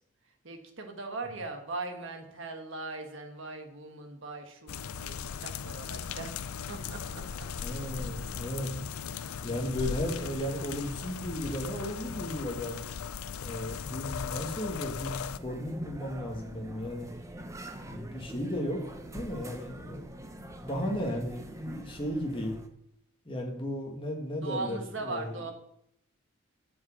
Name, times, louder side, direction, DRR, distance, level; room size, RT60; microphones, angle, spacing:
voice 1, 0.4-6.4 6.7-7.2 24.4-25.5, right 3 dB, 60° right, 5 dB, 1.5 m, -39 dB
sound 1, 4.7-15.4, left 6 dB, 85° left, 0.5 m, -38 dB
voice 2, 7.6-8.7 9.4-12.8 13.4-17.1 17.8-20.1 20.6-22.6 23.2-25.4, equal, 25° left, 1 dB, 1.6 m, -35 dB
sound 2, 15.4-22.7, right 1 dB, 15° right, 0.7 m, -44 dB
7.8 x 7.2 x 6.1 m, 0.74 s
head